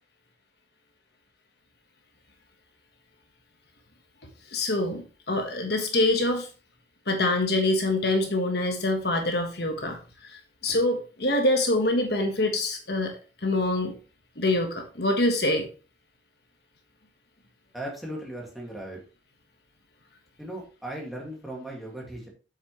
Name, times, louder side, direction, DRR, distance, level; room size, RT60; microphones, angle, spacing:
voice 1, 4.5-6.5 7.1-13.1 13.4-13.9 14.4-15.7, left 2 dB, 60° left, 4 dB, 1.4 m, -25 dB
voice 2, 17.7-19.0 20.4-22.3, right 1 dB, ahead, -3 dB, 2.2 m, -37 dB
8.1 x 6.4 x 3.2 m, 0.35 s
head